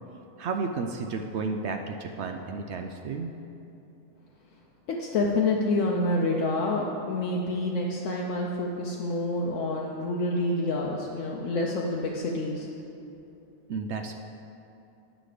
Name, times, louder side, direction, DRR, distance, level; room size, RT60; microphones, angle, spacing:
voice 1, 0.4-3.3 13.7-14.1, right 4 dB, 70° right, 4 dB, 0.8 m, -32 dB
voice 2, 4.9-12.7, left 2 dB, 85° left, -2 dB, 1.1 m, -28 dB
10.0 x 6.1 x 5.0 m, 2.7 s
omnidirectional pair, 1.3 m